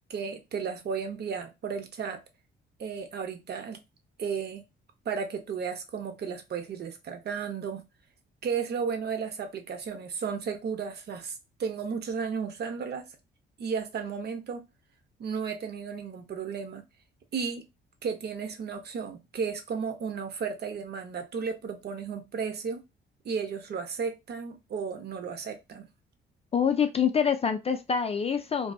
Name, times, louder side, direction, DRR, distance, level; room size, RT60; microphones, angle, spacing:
voice 1, 0.1-2.2 2.8-3.8 4.2-4.6 5.1-7.8 8.4-11.3 11.6-13.0 13.6-14.7 15.2-16.8 17.3-17.7 18.0-22.8 23.2-25.9, right 6 dB, 55° right, 0.7 m, -34 dB
voice 2, 26.5-28.7, left 7 dB, 30° left, 0.3 m, -26 dB
2.6 x 2.4 x 2.3 m
cardioid pair, 90°, 20 cm